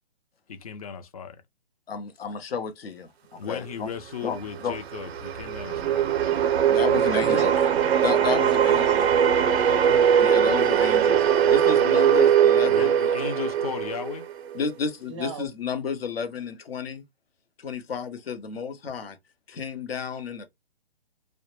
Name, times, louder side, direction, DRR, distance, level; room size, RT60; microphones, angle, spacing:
voice 1, 0.5-1.4 3.3-6.1 12.6-14.3, left 7 dB, 40° left, 0.4 m, -36 dB
voice 2, 1.9-3.1 3.5-3.9 4.2-4.4 4.6-4.7 6.7-7.5 8.0-9.1 10.2-13.0 14.5-17.0 17.6-19.2 19.5-20.5, left 6 dB, 70° left, 0.7 m, -31 dB
sound 1, 4.2-14.6, right 9 dB, 90° right, 0.5 m, -21 dB
voice 3, 6.9-10.2 15.1-15.5, right 5 dB, 30° right, 0.4 m, -37 dB
2.1 x 2.0 x 3.0 m
hypercardioid pair, 150°, 31 cm